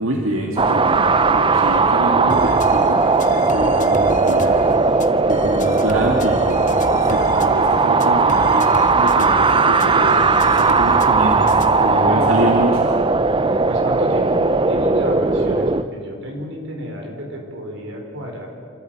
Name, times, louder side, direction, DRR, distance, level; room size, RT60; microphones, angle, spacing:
voice 1, 0.0-3.0 3.3-4.6 5.2-12.8, right 1 dB, 90° right, 1 dB, 1.9 m, -26 dB
sound 1, 0.6-15.8, right 4 dB, 25° right, 0.7 m, -17 dB
sound 2, 2.3-11.9, left 3 dB, 40° left, 0.9 m, -33 dB
voice 2, 12.0-12.5 13.7-18.5, equal, 65° right, 1 dB, 4.9 m, -30 dB
26.5 x 13.5 x 9.2 m, 2.2 s
head